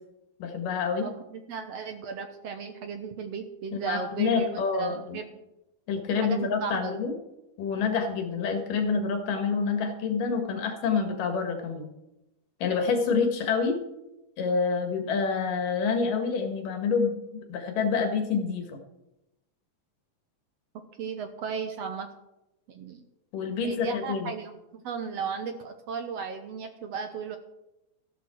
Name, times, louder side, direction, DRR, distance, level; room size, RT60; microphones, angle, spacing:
voice 1, 0.4-1.1 3.7-5.2 5.9-7.1 7.6-11.8 12.6-13.8 14.4-18.8 23.3-24.3, left 5 dB, 80° left, 4 dB, 3.5 m, -27 dB
voice 2, 1.0-4.5 4.8-5.2 6.1-7.0 21.0-22.1 22.7-23.0 23.6-27.4, right 6 dB, 65° right, 7 dB, 1.8 m, -35 dB
13.5 x 12.5 x 4.6 m, 0.92 s
omnidirectional pair, 3.7 m